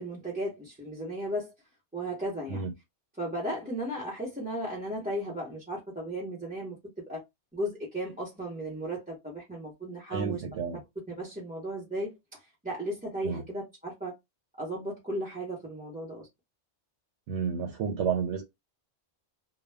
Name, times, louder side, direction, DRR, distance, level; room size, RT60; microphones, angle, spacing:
voice 1, 0.0-1.5 1.9-2.7 3.2-6.8 7.1-7.2 7.5-10.4 11.1-14.1 14.6-16.3, right 1 dB, 10° right, 0.8 m, -35 dB
voice 2, 10.1-10.8 13.2-13.4 17.3-18.4, right 6 dB, 85° right, 0.9 m, -31 dB
2.2 x 2.2 x 3.3 m
omnidirectional pair, 1.2 m